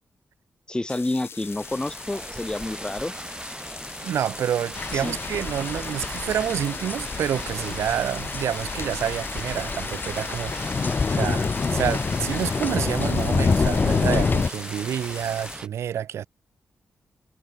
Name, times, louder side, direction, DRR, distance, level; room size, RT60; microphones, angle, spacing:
voice 1, 0.7-3.1 4.9-5.2, left 2 dB, 20° left, 1.3 m, -29 dB
sound 1, 0.9-15.6, left 6 dB, 60° left, 4.2 m, -42 dB
sound 2, 1.4-15.7, right 1 dB, 15° right, 7.7 m, -39 dB
voice 2, 4.0-16.3, right 10 dB, 80° right, 2.5 m, -28 dB
sound 3, 4.7-14.5, left 4 dB, 45° left, 1.3 m, -26 dB
supercardioid pair, 50°, 5 cm